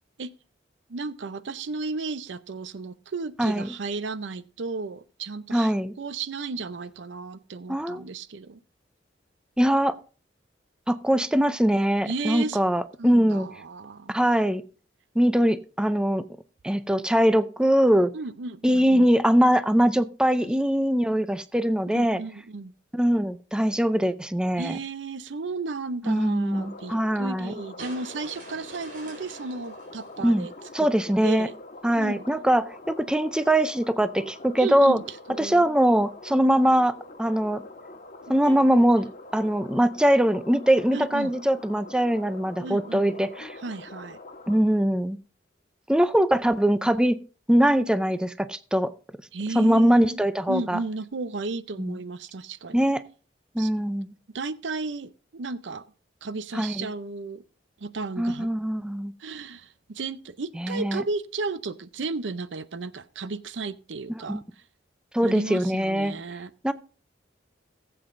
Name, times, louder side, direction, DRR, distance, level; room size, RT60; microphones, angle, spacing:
voice 1, 0.9-8.6 12.1-12.6 13.0-14.1 18.1-19.1 20.4-20.5 21.9-22.7 24.6-30.5 30.8-30.9 31.2-31.5 32.0-32.2 34.6-35.7 38.3-38.9 40.9-41.3 42.6-43.2 43.6-44.2 49.3-50.2 50.5-52.9 53.6-53.9 54.3-55.8 56.2-57.4 57.8-58.5 59.2-64.4 65.2-66.5, right 3 dB, 75° right, 0.6 m, -34 dB
voice 2, 3.4-3.7 5.5-5.9 7.7-8.0 9.6-10.0 10.9-13.5 14.1-14.6 15.2-16.2 16.6-18.1 18.6-22.2 22.9-24.8 26.0-27.5 30.2-30.5 30.7-31.5 31.8-35.0 35.4-37.6 38.3-39.1 39.3-43.6 44.5-45.2 45.9-47.2 47.5-48.9 49.6-50.8 51.8-52.0 52.7-53.0 53.5-54.1 56.5-56.9 58.2-59.1 60.6-61.0 64.3-64.4 65.1-66.1 66.6-66.7, equal, 5° right, 0.4 m, -22 dB
sound 1, 26.5-44.6, left 2 dB, 45° left, 1.4 m, -45 dB
sound 2, 27.8-31.0, right 2 dB, 50° right, 4.1 m, -47 dB
19.0 x 7.9 x 2.6 m
head